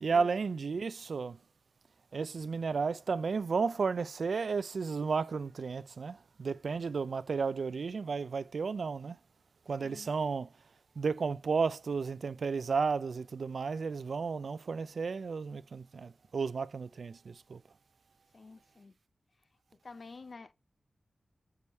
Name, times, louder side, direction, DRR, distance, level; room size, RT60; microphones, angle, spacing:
voice 1, 0.0-1.4 2.1-9.2 9.7-10.5 11.0-17.6, right 5 dB, 70° right, 0.4 m, -33 dB
voice 2, 9.8-10.1 18.3-18.9 19.8-20.5, left 3 dB, 55° left, 0.6 m, -49 dB
6.9 x 4.8 x 4.3 m
wide cardioid pair, 95°, 0 cm